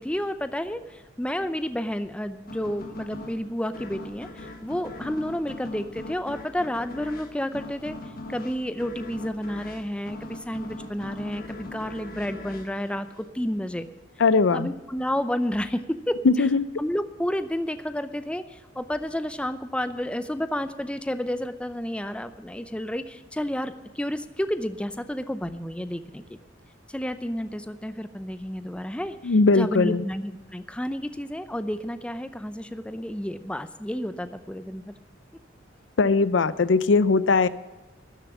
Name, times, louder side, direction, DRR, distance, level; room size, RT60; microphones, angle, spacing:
voice 1, 0.0-8.0 8.3-13.1 13.3-13.9 14.5-16.5 16.8-26.2 26.9-34.9, equal, 5° left, 11 dB, 0.6 m, -31 dB
sound 1, 2.5-13.7, left 2 dB, 50° left, 1.7 m, -41 dB
voice 2, 14.2-14.7 16.2-16.7 29.2-30.0 36.0-37.5, left 4 dB, 70° left, 16 dB, 0.5 m, -20 dB
13.0 x 6.9 x 9.7 m, 1.1 s
head